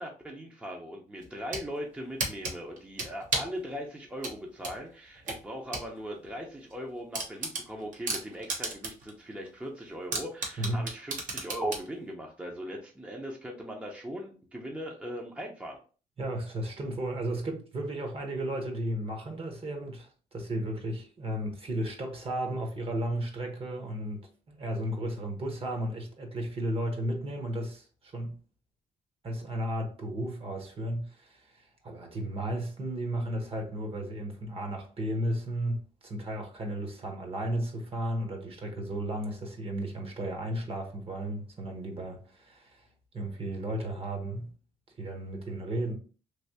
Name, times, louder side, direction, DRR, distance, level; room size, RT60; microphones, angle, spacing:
voice 1, 0.0-15.8, equal, 10° right, 0.7 m, -39 dB
sound 1, 1.2-1.7 2.2-3.6 4.2-5.9 6.2-6.3 6.7-6.8 7.1-9.1 9.5-9.6 10.1-11.9, right 3 dB, 65° right, 1.2 m, -33 dB
voice 2, 10.6-10.9 16.2-28.4 29.2-42.9 43.1-44.5 45.0-45.9, right 1 dB, 40° right, 1.1 m, -34 dB
3.3 x 2.8 x 2.8 m
cardioid pair, 85°, 15 cm